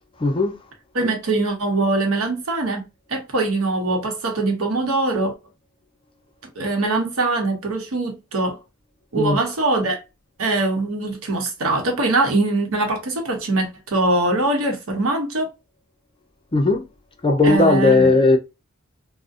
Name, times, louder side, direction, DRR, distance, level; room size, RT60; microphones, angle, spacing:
voice 1, 0.2-0.6 9.1-9.4 16.5-16.8 17.2-18.4, left 3 dB, 25° left, 0.4 m, -16 dB
voice 2, 0.9-2.8 3.1-5.3 6.6-8.6 9.1-10.0 10.4-15.5 17.4-18.1, right 2 dB, 75° right, 0.8 m, -22 dB
2.6 x 2.1 x 2.3 m
head